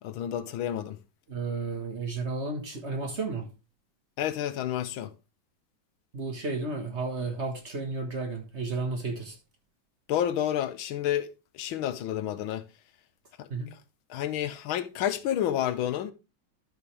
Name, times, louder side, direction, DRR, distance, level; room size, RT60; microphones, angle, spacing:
voice 1, 0.0-1.0 4.2-5.1 10.1-11.3 11.6-12.6 13.4-13.5 14.1-16.1, left 11 dB, 85° left, 1.6 m, -29 dB
voice 2, 1.3-3.5 6.1-9.4 13.5-13.7, right 3 dB, 35° right, 1.6 m, -32 dB
13.0 x 5.4 x 3.2 m
omnidirectional pair, 2.2 m